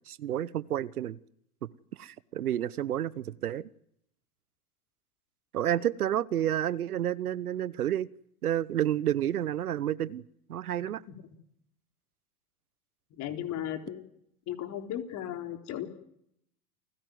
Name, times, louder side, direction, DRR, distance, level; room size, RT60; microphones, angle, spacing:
voice 1, 0.1-1.2 2.0-3.7 5.5-8.1 8.4-10.2 10.5-11.0, right 11 dB, 85° right, 1.1 m, -30 dB
voice 2, 13.2-14.0 14.5-15.9, left 11 dB, 40° left, 3.8 m, -35 dB
29.0 x 16.5 x 9.4 m
hypercardioid pair, 110°, 43 cm